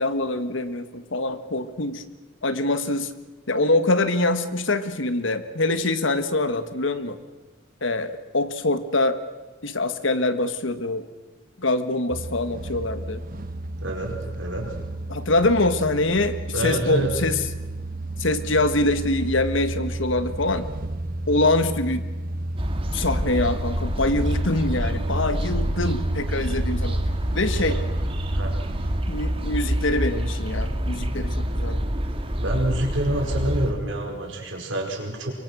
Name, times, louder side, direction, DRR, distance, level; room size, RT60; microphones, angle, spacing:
voice 1, 0.0-2.0 2.4-3.1 3.5-7.2 7.8-9.2 9.6-11.0 11.6-13.2 15.1-17.4 18.2-20.7 21.3-22.1 22.9-27.0 27.3-27.8 29.1-31.9, left 2 dB, 75° left, 11 dB, 1.5 m, -24 dB
sound 1, 12.1-29.0, right 1 dB, 45° right, 1.0 m, -32 dB
voice 2, 13.8-14.7 16.5-17.1 27.5-27.8 28.3-28.6 32.4-35.3, right 1 dB, 75° right, 1 dB, 5.0 m, -27 dB
sound 2, 22.6-33.7, equal, 30° right, 1.7 m, -27 dB
23.5 x 23.5 x 6.2 m, 1.2 s
head